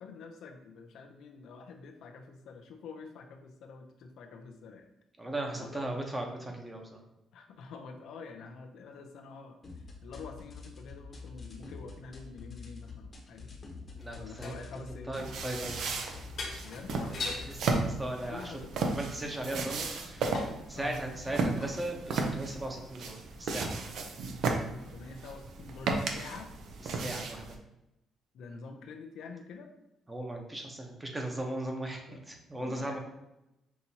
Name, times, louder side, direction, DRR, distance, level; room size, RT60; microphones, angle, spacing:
voice 1, 0.0-4.9 5.5-5.8 7.3-13.5 14.2-15.1 16.6-17.4 18.3-18.7 20.7-21.0 24.6-26.5 28.3-29.7 32.1-32.2 32.6-33.0, left 4 dB, 80° left, 3 dB, 0.5 m, -47 dB
voice 2, 5.2-7.0 14.0-14.5 15.1-16.0 17.8-18.5 18.8-20.4 20.7-23.7 26.9-27.6 30.1-33.0, right 1 dB, 15° right, 2 dB, 0.9 m, -37 dB
sound 1, 9.6-17.6, left 4 dB, 35° left, 1.0 m, -47 dB
sound 2, 14.0-14.7 15.9-16.0 16.3-17.5 19.0-20.6 21.1-21.8 22.4-22.5, left 3 dB, 60° left, 1.3 m, -42 dB
sound 3, 15.2-27.6, right 3 dB, 75° right, 0.6 m, -35 dB
5.7 x 2.7 x 2.8 m, 0.90 s
cardioid pair, 90°, 0 cm